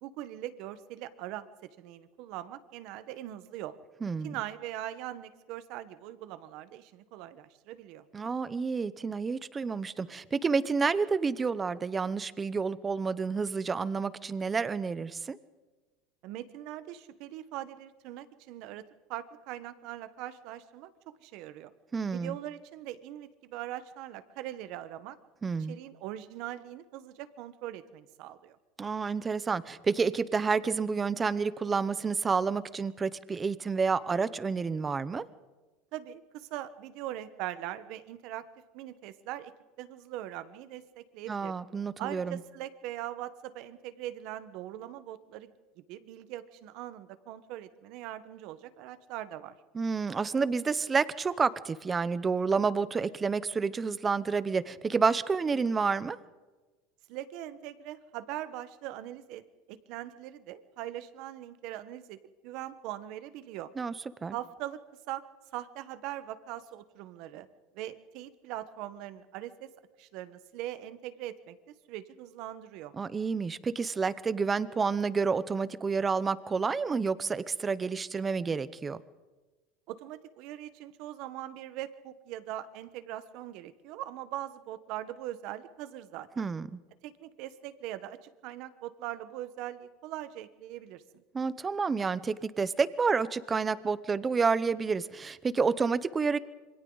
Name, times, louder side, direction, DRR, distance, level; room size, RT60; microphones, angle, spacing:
voice 1, 0.0-3.8 4.2-8.0 16.2-18.8 19.1-20.9 21.2-21.7 22.1-25.2 25.7-28.6 35.9-38.4 38.7-39.5 39.8-41.5 42.0-45.5 45.9-49.5 57.1-59.4 59.7-63.7 64.3-64.8 65.1-65.2 65.5-67.5 67.7-69.7 70.0-71.6 71.9-72.9 79.9-86.5 87.0-91.0, right 13 dB, 50° right, 12 dB, 1.2 m, -41 dB
voice 2, 4.0-4.3 8.1-15.4 21.9-22.4 25.4-25.8 28.8-35.2 41.3-42.4 49.7-56.2 63.8-63.9 64.2-64.4 72.9-79.0 86.4-86.8 91.3-96.4, right 5 dB, 15° right, 16 dB, 0.7 m, -29 dB
27.0 x 24.5 x 4.0 m, 1.2 s
supercardioid pair, 160°, 0 cm